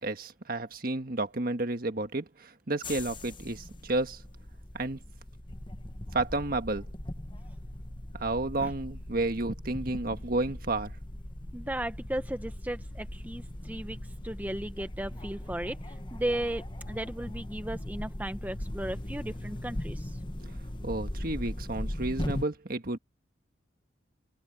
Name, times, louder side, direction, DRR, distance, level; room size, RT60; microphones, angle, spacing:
voice 1, 0.0-4.2 4.7-5.0 6.1-6.9 8.1-10.9 20.4-20.6 20.8-23.0, right 2 dB, 50° right, 1.6 m, -31 dB
sound 1, 2.8-22.5, left 1 dB, 25° left, 1.2 m, -39 dB
voice 2, 11.5-20.2, right 1 dB, 10° right, 0.8 m, -36 dB
open air
head